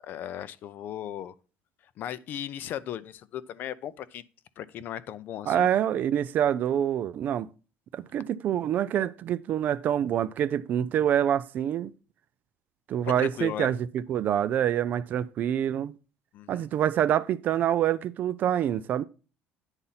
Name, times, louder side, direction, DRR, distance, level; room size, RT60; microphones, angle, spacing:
voice 1, 0.0-1.3 2.0-4.2 4.6-5.7 13.0-13.7 16.3-16.7, left 10 dB, 45° left, 0.5 m, -37 dB
voice 2, 5.5-7.5 7.9-11.9 12.9-15.9 16.5-19.0, right 10 dB, 40° right, 0.4 m, -26 dB
9.9 x 4.1 x 5.7 m
cardioid pair, 165°, 5 cm